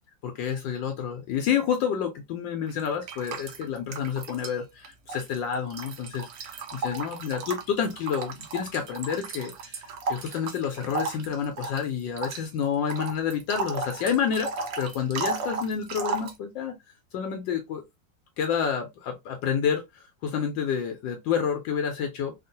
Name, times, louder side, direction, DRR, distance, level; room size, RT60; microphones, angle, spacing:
voice 1, 0.2-14.5 14.8-16.8 17.1-17.8 18.4-22.3, left 7 dB, 75° left, 1.3 m, -29 dB
sound 1, 2.7-4.6 4.8-16.4, right 4 dB, 65° right, 0.9 m, -35 dB
3.6 x 2.4 x 2.6 m
omnidirectional pair, 2.1 m